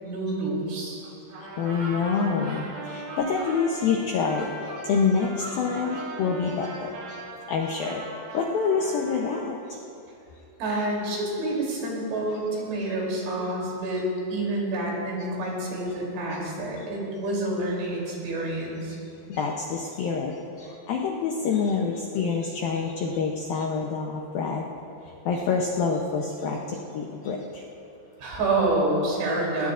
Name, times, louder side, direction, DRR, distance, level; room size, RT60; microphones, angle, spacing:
voice 1, 0.0-1.0 10.6-18.9 28.2-29.7, right 2 dB, 80° right, -3 dB, 5.6 m, -28 dB
sound 1, 1.0-1.1 1.4-1.5 1.7-3.6 4.1-6.1, right 1 dB, 35° right, 5.3 m, -42 dB
Trumpet, 1.3-9.5, right 3 dB, 65° right, 4.9 m, -40 dB
voice 2, 1.4-4.5 4.8-5.3 5.6-7.2 7.5-8.0 8.3-9.6 16.3-16.4 16.8-16.9 19.3-24.7 25.3-26.6 26.9-27.6, left 5 dB, 80° left, -1 dB, 2.1 m, -27 dB
22.0 x 19.5 x 2.5 m, 2.8 s
omnidirectional pair, 5.3 m